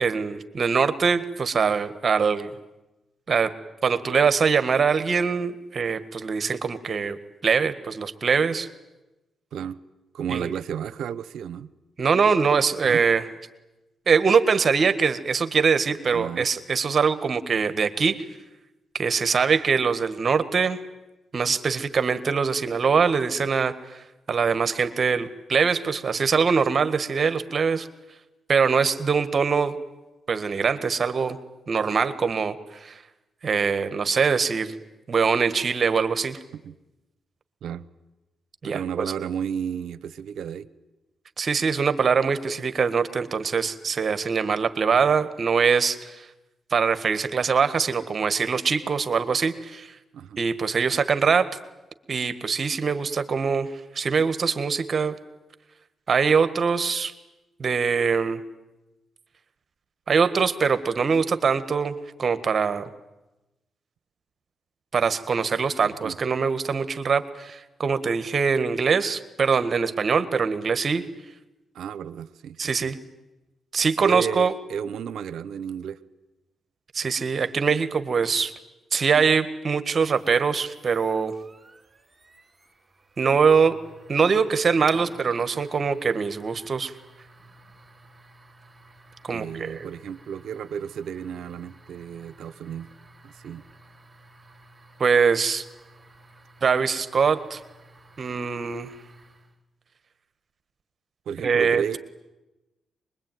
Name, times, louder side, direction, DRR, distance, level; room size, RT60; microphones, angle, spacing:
voice 1, 0.0-2.5 3.3-3.5 3.8-7.2 7.4-8.7 10.3-10.5 12.0-13.3 14.1-18.2 18.9-20.8 21.3-24.0 24.3-27.9 28.5-29.8 30.3-31.4 31.7-33.0 33.4-34.7 35.1-36.4 38.6-39.1 41.4-46.3 46.7-49.9 50.4-51.6 52.1-55.1 56.1-57.1 57.6-58.4 60.1-62.9 64.9-71.0 72.6-73.0 73.7-74.5 76.9-78.5 78.9-81.3 83.2-83.8 84.1-86.9 89.2-89.9 95.0-95.6 96.6-97.6 98.2-98.9 101.4-102.0, right 5 dB, 50° right, 11 dB, 1.7 m, -23 dB
voice 2, 10.1-11.7 12.8-13.0 16.1-16.5 36.6-36.7 37.6-37.8 38.6-40.7 50.1-50.4 65.8-66.2 71.7-72.9 74.0-76.0 89.3-92.9 93.2-93.6 101.3-102.0, right 8 dB, 80° right, 16 dB, 0.9 m, -32 dB
sound 1, 80.0-99.6, right 2 dB, 25° right, 3.6 m, -52 dB
24.0 x 22.0 x 9.3 m, 1.0 s
supercardioid pair, 60°, 0 cm